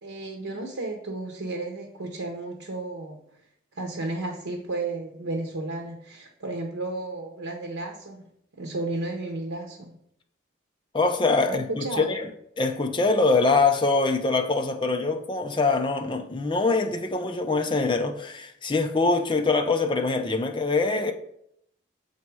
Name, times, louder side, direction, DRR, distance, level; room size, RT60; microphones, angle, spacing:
voice 1, 0.0-3.2 3.7-8.3 8.5-10.0 11.4-12.1, right 2 dB, 90° right, 0.9 m, -33 dB
voice 2, 10.9-12.3 12.6-21.1, left 3 dB, 25° left, 0.5 m, -24 dB
7.3 x 4.1 x 4.7 m
head